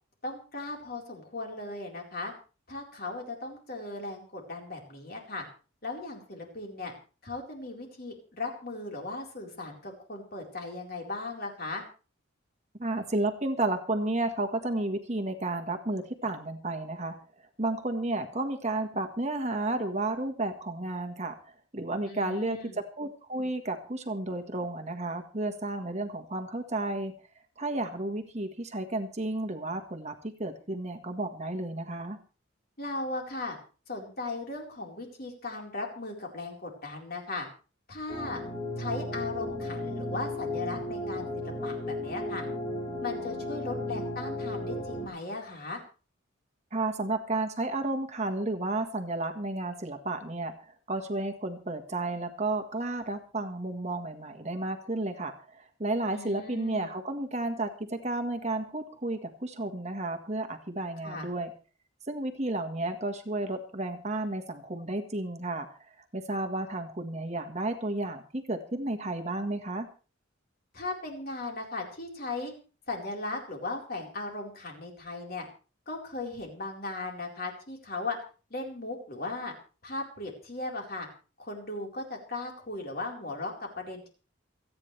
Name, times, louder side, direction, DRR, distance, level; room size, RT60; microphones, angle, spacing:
voice 1, 0.2-2.3 2.7-5.4 5.8-6.9 7.2-11.8 22.1-22.8 32.8-33.6 33.9-37.5 37.9-38.4 38.8-42.5 43.0-45.8 56.1-56.9 61.0-61.3 70.7-72.5 72.9-75.4 75.9-78.2 78.5-79.5 79.8-81.1 81.4-84.1, left 2 dB, 45° left, 1 dB, 4.3 m, -37 dB
voice 2, 12.8-17.2 17.6-27.1 27.6-32.2 46.7-61.5 62.1-69.9, right 2 dB, 30° right, 6 dB, 1.5 m, -32 dB
sound 1, 38.1-45.1, left 1 dB, 20° left, 4.3 m, -35 dB
28.5 x 9.7 x 3.3 m, 0.36 s
head